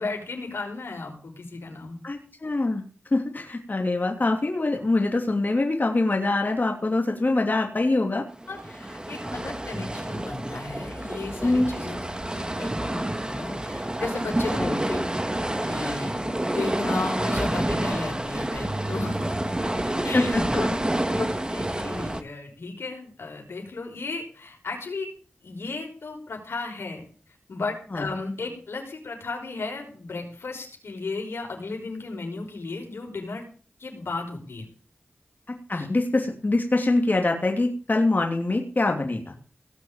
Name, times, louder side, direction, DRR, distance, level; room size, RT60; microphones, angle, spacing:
voice 1, 0.0-2.0 8.5-8.6 9.1-12.0 12.5-15.0 15.4-20.7 21.0-25.1 25.4-27.0 27.5-33.5 33.8-34.7 35.7-35.9, left 3 dB, 90° left, 2 dB, 5.4 m, -35 dB
voice 2, 2.0-2.8 3.1-8.2 9.8-9.9 11.4-11.7 14.6-14.8 20.1-20.4 27.9-28.1 35.5-39.3, left 2 dB, 50° left, 2 dB, 2.9 m, -24 dB
sound 1, 8.3-22.2, right 1 dB, 20° right, 2.1 m, -28 dB
18.0 x 6.3 x 9.0 m, 0.39 s
cardioid pair, 40°, 4 cm